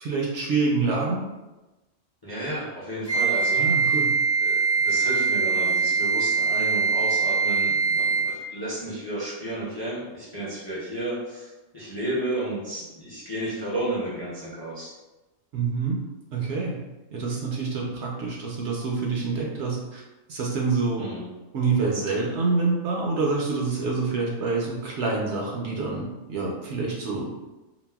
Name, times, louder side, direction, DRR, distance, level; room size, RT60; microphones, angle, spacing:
voice 1, 0.0-1.2 3.6-4.1 15.5-16.0 16.3-16.8 17.1-20.0 20.3-21.0 21.5-27.4, right 4 dB, 65° right, -3 dB, 0.8 m, -26 dB
voice 2, 2.2-4.0 4.4-14.9 21.0-21.3, right 1 dB, 25° left, -8 dB, 0.5 m, -32 dB
Wind instrument woodwind instrument, 3.1-8.4, right 4 dB, 70° left, 1.0 m, -23 dB
3.9 x 2.0 x 2.2 m, 1.1 s
omnidirectional pair, 1.4 m